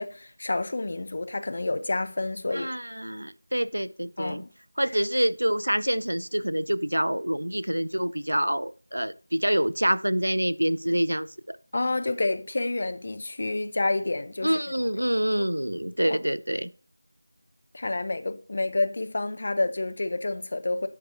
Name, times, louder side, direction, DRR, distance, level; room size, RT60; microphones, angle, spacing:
voice 1, 0.0-2.7 4.2-4.5 11.7-14.6 15.4-15.5 16.0-16.2 17.7-20.9, left 2 dB, 40° left, 0.6 m, -29 dB
voice 2, 2.5-4.4 4.8-11.6 14.4-16.7, equal, 85° right, 0.5 m, -26 dB
10.5 x 4.6 x 2.7 m
figure-of-eight pair, 170°, 0 cm